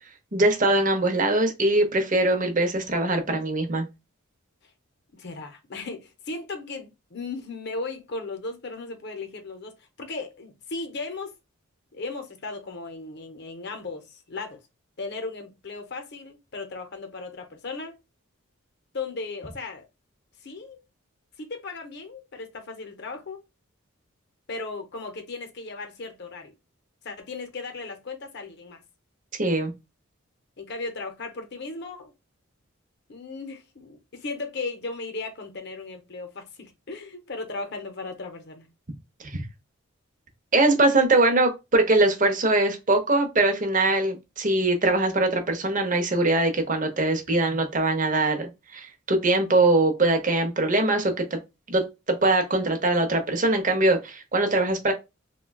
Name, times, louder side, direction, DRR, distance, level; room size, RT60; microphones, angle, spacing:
voice 1, 0.3-3.9 29.4-29.7 39.3-39.4 40.5-51.4 51.7-54.9, right 2 dB, 40° right, 0.7 m, -22 dB
voice 2, 5.1-11.3 11.9-14.6 15.0-18.0 18.9-19.8 20.4-20.8 21.4-23.4 24.5-26.5 27.0-28.8 30.6-32.1 33.1-38.7, left 3 dB, 50° left, 0.7 m, -36 dB
3.7 x 2.2 x 2.2 m
head